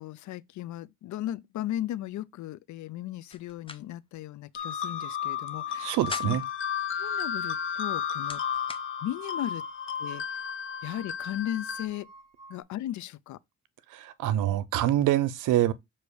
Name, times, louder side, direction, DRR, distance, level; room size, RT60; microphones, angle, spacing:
voice 1, 0.0-5.9 6.2-6.4 7.0-8.4 9.0-9.6 10.0-10.2 10.8-12.1 12.5-13.4, left 13 dB, 70° left, 0.5 m, -36 dB
sound 1, 3.3-3.8 4.1-4.2 5.7-6.6 7.7-8.8, left 4 dB, 20° left, 0.7 m, -41 dB
sound 2, 4.6-11.9, left 8 dB, 40° left, 1.1 m, -33 dB
sound 3, 5.0-12.6, right 3 dB, 25° right, 4.6 m, -48 dB
voice 2, 5.8-6.4 13.9-15.7, right 13 dB, 85° right, 0.7 m, -25 dB
6.9 x 2.9 x 4.7 m
cardioid pair, 90°, 30 cm